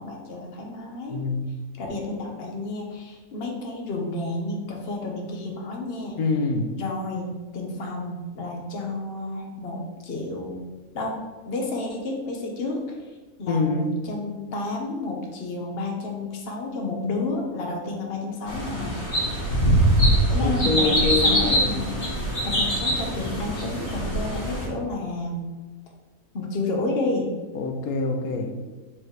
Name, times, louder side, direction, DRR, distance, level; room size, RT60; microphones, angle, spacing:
voice 1, 0.0-1.2 1.7-6.2 6.8-10.6 10.9-11.2 11.5-13.0 13.4-19.0 20.3-21.9 22.4-25.5 26.3-27.3, left 2 dB, 45° left, 0 dB, 1.2 m, -31 dB
voice 2, 1.1-1.5 6.2-6.7 13.5-13.9 20.4-21.7 27.5-28.5, left 3 dB, 85° left, 3 dB, 1.1 m, -25 dB
sound 1, 18.5-24.7, equal, 25° left, 1.7 m, -23 dB
7.6 x 3.2 x 4.5 m, 1.2 s
omnidirectional pair, 1.5 m